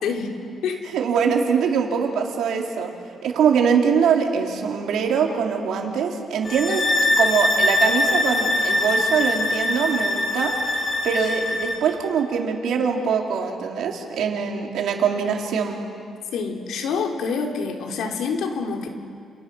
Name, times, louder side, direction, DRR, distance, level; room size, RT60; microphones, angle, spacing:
voice 1, 0.0-0.3 0.6-0.8 16.3-18.9, left 5 dB, 80° left, 2 dB, 3.4 m, -26 dB
voice 2, 0.9-2.9 3.2-6.8 7.2-10.5 11.0-15.8, right 6 dB, 75° right, 1 dB, 3.7 m, -23 dB
sound 1, 6.4-11.8, left 1 dB, 35° left, 3.5 m, -22 dB
29.0 x 27.5 x 6.3 m, 2.4 s
cardioid pair, 90°, 0 cm